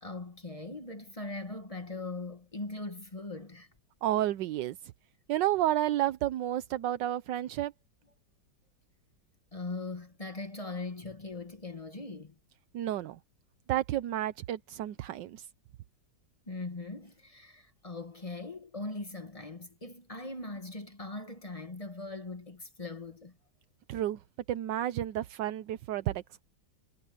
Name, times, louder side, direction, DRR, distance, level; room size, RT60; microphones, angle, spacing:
voice 1, 0.0-3.7 9.5-12.4 16.5-23.4, left 2 dB, 20° left, 1.3 m, -40 dB
voice 2, 4.0-4.8 5.3-7.7 12.7-13.2 13.7-15.5 23.9-24.2 24.5-26.2, right 13 dB, 80° right, 1.4 m, -31 dB
omnidirectional pair, 1.9 m